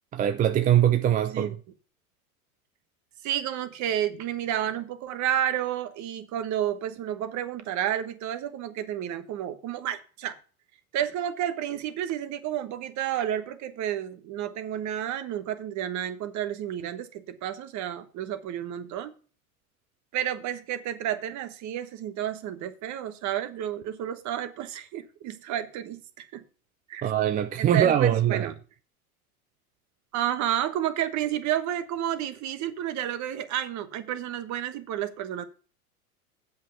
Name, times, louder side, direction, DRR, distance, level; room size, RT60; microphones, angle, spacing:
voice 1, 0.1-1.6 27.0-28.5, right 10 dB, 20° right, 0.4 m, -22 dB
voice 2, 3.2-10.4 10.9-19.1 20.1-26.4 26.9-27.1 27.6-28.5 30.1-35.4, right 11 dB, 40° right, 1.2 m, -31 dB
7.9 x 5.7 x 6.7 m
hypercardioid pair, 110°, 44 cm